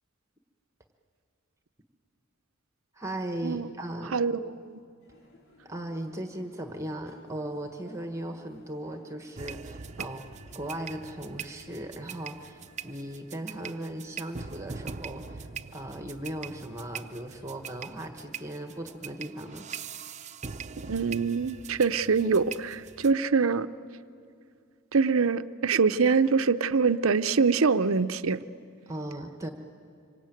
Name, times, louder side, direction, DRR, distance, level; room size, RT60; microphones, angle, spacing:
voice 1, 2.9-4.2 5.6-10.2 10.5-19.7 28.9-29.5, right 1 dB, 15° right, 1.2 m, -37 dB
voice 2, 4.1-4.8 20.8-23.7 24.9-28.4, right 5 dB, 75° right, 0.7 m, -24 dB
sound 1, 5.0-19.3, left 1 dB, 75° left, 4.8 m, -59 dB
sound 2, 9.3-23.1, right 6 dB, 35° right, 0.7 m, -42 dB
26.0 x 23.5 x 9.1 m
head